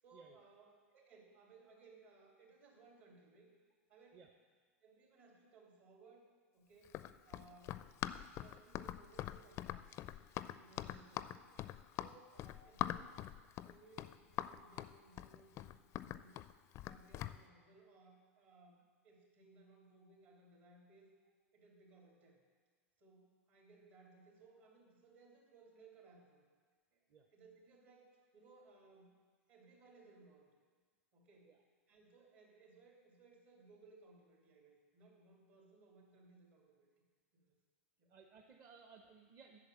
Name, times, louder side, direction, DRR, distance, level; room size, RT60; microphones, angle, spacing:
voice 1, 0.0-3.5 3.9-4.2 4.8-6.3 6.5-7.0 7.2-7.8 8.2-11.5 12.0-13.1 13.6-15.7 16.0-16.4 16.8-21.1 21.5-22.4 23.0-26.4 26.9-27.0 27.3-29.2 29.5-30.5 31.1-31.6 31.9-36.9 37.3-37.5 38.0-38.1, right 3 dB, 60° right, 0 dB, 3.1 m, -63 dB
Run, 6.8-17.4, left 12 dB, 40° left, 0.4 m, -43 dB
voice 2, 38.1-39.6, right 5 dB, 35° right, 4 dB, 0.9 m, -60 dB
8.3 x 6.8 x 8.2 m, 1.5 s
hypercardioid pair, 95°, 8 cm